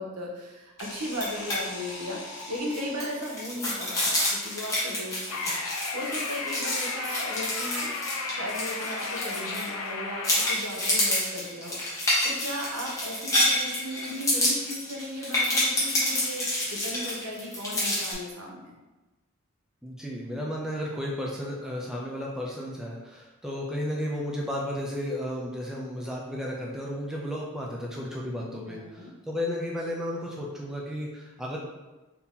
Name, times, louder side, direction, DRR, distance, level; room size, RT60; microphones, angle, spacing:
voice 1, 0.0-7.9 8.3-18.7 28.7-29.1, equal, 90° right, -2 dB, 1.0 m, -36 dB
sound 1, 0.8-3.7, left 2 dB, 55° left, 1.3 m, -42 dB
sound 2, 1.1-1.6 1.9-2.0 2.4-9.9 10.2-18.1, left 1 dB, 15° left, 1.1 m, -28 dB
sound 3, 5.3-10.5, left 3 dB, 75° left, 0.5 m, -34 dB
voice 2, 19.8-31.6, left 1 dB, ahead, -3 dB, 0.5 m, -33 dB
4.1 x 2.9 x 3.7 m, 1.1 s
head